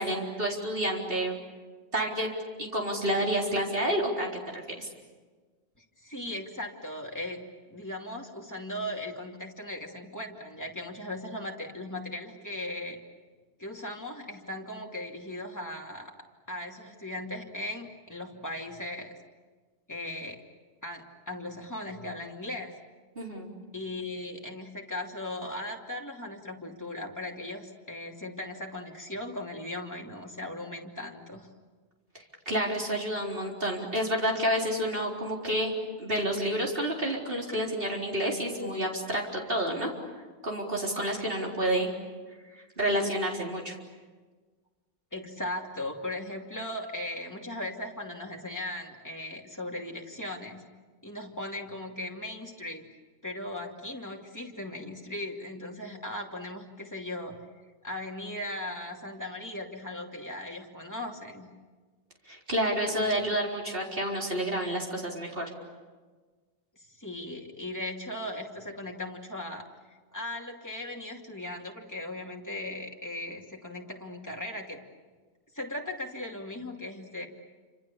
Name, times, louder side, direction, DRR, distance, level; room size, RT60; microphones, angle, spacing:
voice 1, 0.0-1.4 1.9-2.3 2.6-4.3 4.5-4.9 23.2-23.5 32.1-35.7 36.0-39.9 40.4-41.9 42.5-43.8 62.3-65.4, equal, 55° right, -1 dB, 4.4 m, -29 dB
voice 2, 6.0-13.0 13.6-16.1 16.5-19.1 19.9-20.4 20.8-22.7 23.7-31.5 45.1-50.7 51.0-52.9 53.2-57.4 57.8-61.5 66.8-74.8 75.5-77.3, left 1 dB, 15° left, 0 dB, 2.8 m, -38 dB
29.0 x 26.5 x 7.1 m, 1.4 s
omnidirectional pair, 1.1 m